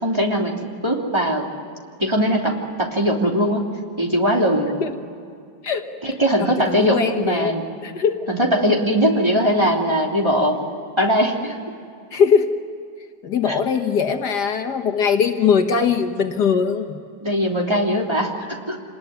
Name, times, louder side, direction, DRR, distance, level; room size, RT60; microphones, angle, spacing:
voice 1, 0.0-1.5 2.0-3.7 4.0-4.7 6.0-7.6 8.3-10.6 11.0-11.6 13.5-13.6 17.2-18.8, equal, 15° right, 0 dB, 3.0 m, -20 dB
voice 2, 6.4-7.6 7.8-8.2 12.1-12.5 13.2-17.0, left 6 dB, 65° left, 6 dB, 1.9 m, -20 dB
27.5 x 20.0 x 9.5 m, 2.4 s
omnidirectional pair, 1.9 m